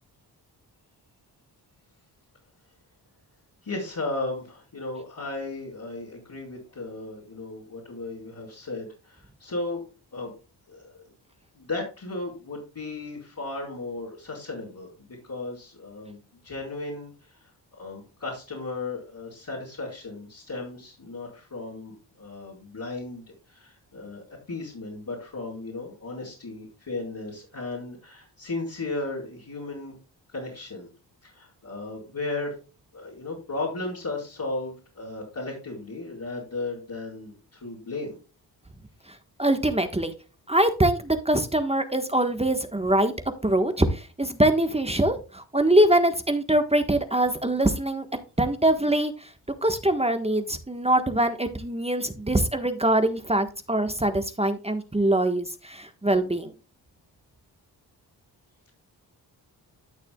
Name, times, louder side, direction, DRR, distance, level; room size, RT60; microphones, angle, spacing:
voice 1, 3.6-9.8 10.1-10.3 10.7-11.1 11.5-16.2 16.4-29.9 30.3-30.9 31.2-32.5 32.9-38.2, left 2 dB, 50° left, -7 dB, 4.9 m, -35 dB
voice 2, 39.4-40.1 40.5-43.1 43.4-48.0 48.4-49.3 49.6-56.5, right 1 dB, 15° right, 7 dB, 1.4 m, -23 dB
13.5 x 6.5 x 2.3 m, 0.33 s
cardioid pair, 55°, 44 cm